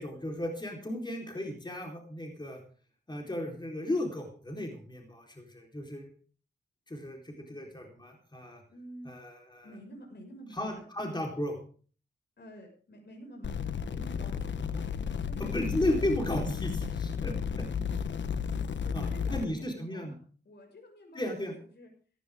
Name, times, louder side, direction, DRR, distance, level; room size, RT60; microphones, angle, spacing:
voice 1, 0.0-2.6 3.1-6.1 6.9-8.6 9.0-9.7 10.5-11.6 15.4-17.7 18.9-20.1 21.1-21.5, left 1 dB, 25° left, 1 dB, 4.2 m, -35 dB
voice 2, 8.7-9.1 9.6-10.8 12.4-14.6 15.2-16.1 18.8-20.2 20.4-21.9, equal, 65° left, 2 dB, 6.2 m, -50 dB
sound 1, 13.4-19.4, left 6 dB, 80° left, 1.2 m, -33 dB
16.5 x 15.5 x 3.7 m, 0.42 s
cardioid pair, 70°, 19 cm